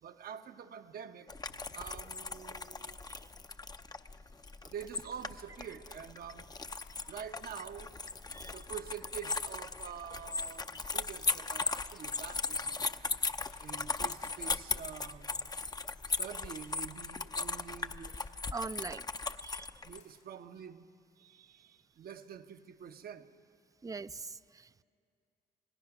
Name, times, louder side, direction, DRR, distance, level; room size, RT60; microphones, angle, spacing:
voice 1, 0.0-3.0 4.7-6.7 7.1-7.9 8.4-13.0 13.6-15.5 16.2-18.2 18.9-19.0 19.8-20.9 21.2-23.3, right 8 dB, 60° right, 8 dB, 1.0 m, -47 dB
sound 1, 1.3-20.0, left 3 dB, 25° left, 0.7 m, -38 dB
sound 2, 6.7-20.3, left 7 dB, 90° left, 2.8 m, -67 dB
voice 2, 18.5-19.0 19.4-19.7 23.8-24.8, right 4 dB, 20° right, 15 dB, 0.5 m, -42 dB
27.0 x 18.5 x 6.0 m, 2.3 s
supercardioid pair, 60°, 17 cm